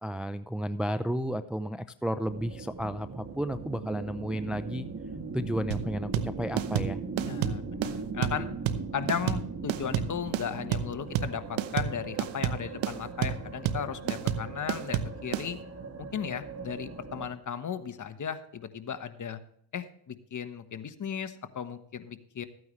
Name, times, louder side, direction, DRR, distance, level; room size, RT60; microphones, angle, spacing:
voice 1, 0.0-4.9 5.3-7.0, equal, ahead, 11 dB, 0.4 m, -32 dB
sound 1, 2.2-17.3, right 4 dB, 35° right, 2.4 m, -40 dB
sound 2, 5.7-15.5, right 10 dB, 80° right, 1.0 m, -30 dB
voice 2, 7.2-8.5 8.9-15.6 16.0-19.4 19.7-22.5, left 7 dB, 40° left, 10 dB, 1.2 m, -36 dB
14.0 x 9.3 x 3.2 m, 0.68 s
supercardioid pair, 75°, 46 cm